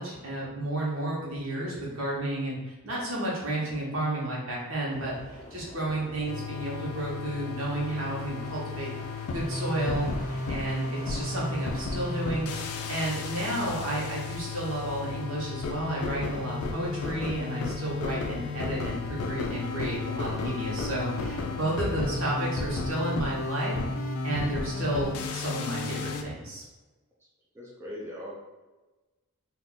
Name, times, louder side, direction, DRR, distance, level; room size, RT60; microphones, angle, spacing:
voice 1, 0.0-8.9 9.3-23.7 24.2-26.6, right 1 dB, 65° right, -5 dB, 1.0 m, -32 dB
sound 1, 4.9-22.3, equal, 35° left, 0.7 m, -46 dB
sound 2, 6.3-26.2, left 3 dB, 85° left, 0.4 m, -33 dB
voice 2, 27.5-28.3, left 1 dB, 10° right, -7 dB, 0.4 m, -39 dB
2.5 x 2.3 x 3.7 m, 1.2 s
head